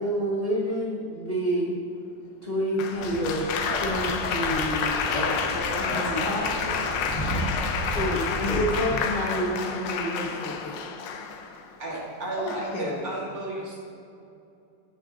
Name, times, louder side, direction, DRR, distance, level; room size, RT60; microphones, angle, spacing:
voice 1, 0.0-1.8 2.4-3.5 3.8-5.4 5.8-6.6 8.4-10.8, equal, 40° left, -5 dB, 1.0 m, -29 dB
Applause, 2.8-11.6 12.5-12.9, left 6 dB, 75° left, 1.3 m, -30 dB
sound 1, 2.9-8.8, right 1 dB, 15° left, 2.1 m, -33 dB
voice 2, 7.2-8.7 12.4-13.2, left 1 dB, 60° left, -1 dB, 1.6 m, -33 dB
voice 3, 11.8-13.8, right 2 dB, 50° right, -5 dB, 2.3 m, -33 dB
16.5 x 5.6 x 2.7 m, 2.6 s
omnidirectional pair, 2.0 m